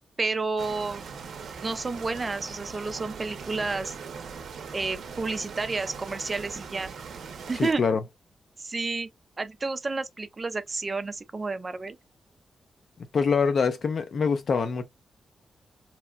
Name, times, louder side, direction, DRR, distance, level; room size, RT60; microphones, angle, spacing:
voice 1, 0.2-1.1 1.6-3.9 4.7-6.9 7.5-7.8 8.6-9.1 9.4-12.0, right 3 dB, 25° right, 0.3 m, -30 dB
sound 1, 0.6-7.7, right 5 dB, 70° right, 0.6 m, -40 dB
voice 2, 7.6-8.0 13.1-14.9, left 5 dB, 55° left, 0.5 m, -24 dB
2.9 x 2.1 x 2.3 m
wide cardioid pair, 160°, 0 cm